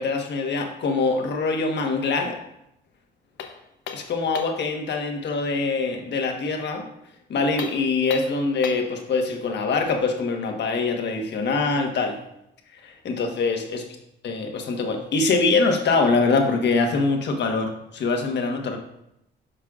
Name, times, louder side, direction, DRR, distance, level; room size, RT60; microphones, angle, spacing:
voice 1, 0.0-2.4 3.9-6.8 7.3-12.2 12.7-13.8 14.2-18.8, left 4 dB, 60° left, 3 dB, 1.3 m, -24 dB
sound 1, 3.4-4.7 7.5-9.0, left 7 dB, 80° left, 0.8 m, -37 dB
9.9 x 5.6 x 2.4 m, 0.81 s
cardioid pair, 90°, 20 cm